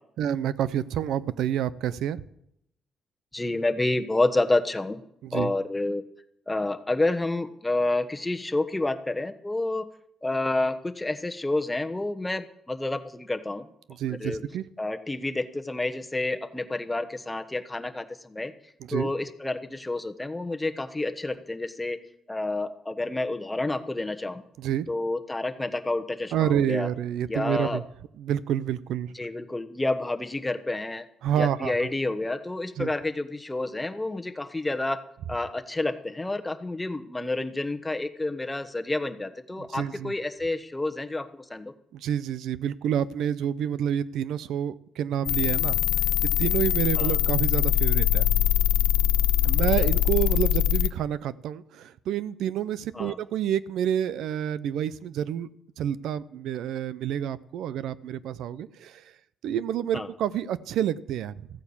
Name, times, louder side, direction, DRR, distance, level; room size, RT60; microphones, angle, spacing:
voice 1, 0.2-2.2 5.2-5.5 14.0-14.6 18.8-19.1 24.6-24.9 26.3-27.8 28.2-29.1 31.2-31.9 32.8-32.9 39.6-40.1 41.9-45.8 46.4-48.3 49.4-55.5 55.8-59.0 59.4-61.5, right 10 dB, 80° right, 18 dB, 0.6 m, -28 dB
voice 2, 3.3-5.0 5.3-6.0 6.5-9.9 10.2-13.7 14.1-14.4 14.8-18.5 18.9-22.0 22.3-24.4 24.9-26.9 27.3-27.8 29.1-31.1 31.4-35.0 35.3-41.7 47.0-47.2 49.8-49.9 52.9-53.2 59.9-60.1, left 2 dB, 15° left, 7 dB, 1.2 m, -29 dB
sound 1, 45.3-50.9, left 13 dB, 85° left, 0.5 m, -23 dB
14.5 x 9.1 x 7.2 m, 0.77 s
cardioid pair, 90°, 0 cm